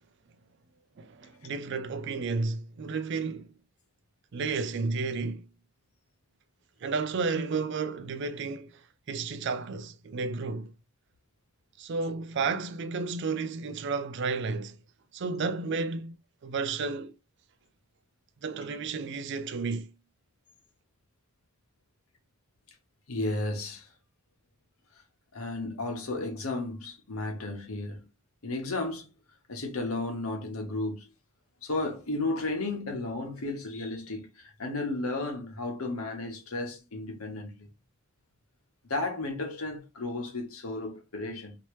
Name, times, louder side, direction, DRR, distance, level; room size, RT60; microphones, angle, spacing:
voice 1, 1.0-3.5 4.3-5.5 6.8-10.7 11.8-14.8 15.1-16.1 16.4-17.1 18.4-19.9, right 4 dB, 55° right, 0.4 m, -32 dB
voice 2, 23.1-23.9 25.3-28.1 28.4-29.1 29.5-31.1 31.6-37.7 38.8-41.6, left 2 dB, 90° left, 1.2 m, -33 dB
3.1 x 2.9 x 3.0 m
head